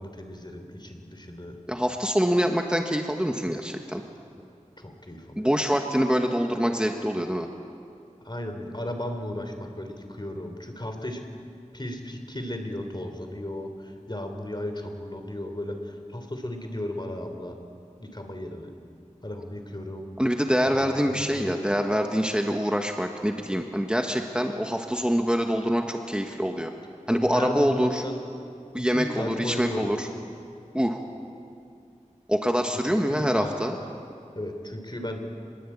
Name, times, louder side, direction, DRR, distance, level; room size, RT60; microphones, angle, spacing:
voice 1, 0.0-1.6 4.8-5.5 8.2-11.2 11.7-17.6 18.0-18.7 19.2-20.1 20.6-21.8 27.1-28.2 28.8-29.9 32.8-33.5 34.3-35.2, left 1 dB, 35° left, 5 dB, 3.4 m, -35 dB
voice 2, 1.7-4.0 5.4-7.5 20.2-26.7 27.1-28.0 28.7-30.1 30.7-31.0 32.3-33.8, equal, 5° right, 3 dB, 1.5 m, -25 dB
26.5 x 21.0 x 8.6 m, 2.4 s
wide cardioid pair, 40°, 13 cm